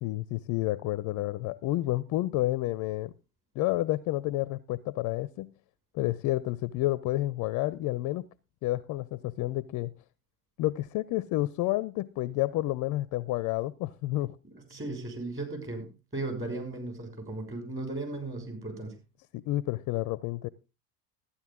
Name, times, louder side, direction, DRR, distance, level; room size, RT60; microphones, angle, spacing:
voice 1, 0.0-3.1 3.6-5.5 5.9-8.3 8.6-9.9 10.6-14.4 19.3-20.5, left 16 dB, 40° left, 0.5 m, -30 dB
voice 2, 14.5-19.0, right 2 dB, 25° right, 6.1 m, -36 dB
14.0 x 10.0 x 3.6 m
hypercardioid pair, 80°, 49 cm